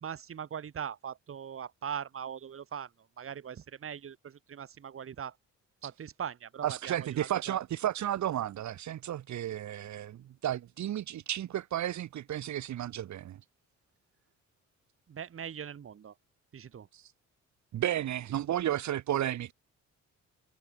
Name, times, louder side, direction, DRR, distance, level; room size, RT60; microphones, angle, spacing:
voice 1, 0.0-2.9 3.2-5.4 5.8-7.6 15.1-16.1 16.5-16.9, right 8 dB, 45° right, 1.9 m, -40 dB
voice 2, 6.6-13.4 17.7-19.5, right 12 dB, 70° right, 1.8 m, -33 dB
cardioid pair, 90°, 30 cm